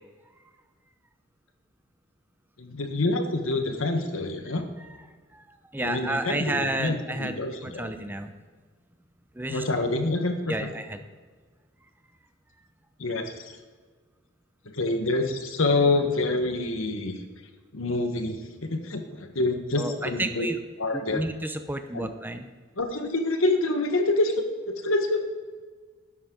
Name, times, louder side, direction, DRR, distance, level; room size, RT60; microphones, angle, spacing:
voice 1, 2.6-4.6 5.8-7.9 9.5-10.7 13.0-13.3 14.7-17.1 17.7-20.5 20.8-21.2 21.9-22.1 22.8-25.2, left 2 dB, 80° left, 6 dB, 1.4 m, -26 dB
voice 2, 5.7-8.3 9.4-9.6 10.5-11.0 19.8-20.6 20.9-22.5, right 1 dB, 10° right, 8 dB, 0.6 m, -31 dB
12.5 x 10.5 x 3.9 m, 1.5 s
head